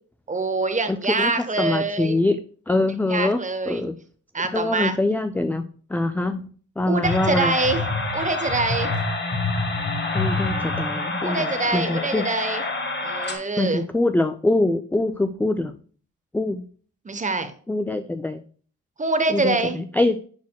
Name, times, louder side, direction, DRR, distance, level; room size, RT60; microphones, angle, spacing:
voice 1, 0.3-2.2 3.1-3.8 4.3-5.0 6.9-7.8 8.1-8.9 11.2-12.6 13.0-13.8 17.0-17.5 19.0-19.8, right 3 dB, 25° right, 9 dB, 1.0 m, -25 dB
voice 2, 0.9-2.4 2.7-3.4 3.7-3.9 4.5-5.6 5.9-7.5 10.1-12.3 13.6-15.7 16.3-16.6 17.7-18.4 19.3-20.2, left 2 dB, 5° left, 9 dB, 0.3 m, -24 dB
sound 1, 7.0-13.4, left 3 dB, 35° left, 1.6 m, -27 dB
10.5 x 4.1 x 2.2 m, 0.43 s
cardioid pair, 95°, 32 cm